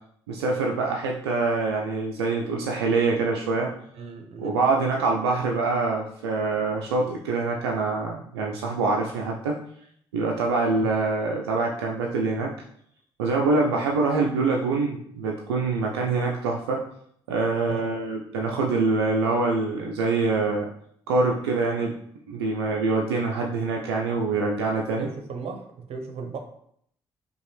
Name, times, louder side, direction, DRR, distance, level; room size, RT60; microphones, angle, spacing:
voice 1, 0.3-3.7 4.4-9.6 10.1-12.5 13.2-16.8 17.3-20.7 21.1-21.9 22.3-25.1, right 3 dB, 80° right, 0 dB, 0.4 m, -25 dB
voice 2, 3.9-4.6 10.8-11.0 17.7-17.9 25.0-26.4, right 5 dB, 50° right, 5 dB, 0.8 m, -36 dB
4.9 x 2.3 x 3.3 m, 0.68 s
figure-of-eight pair, 45°, 13 cm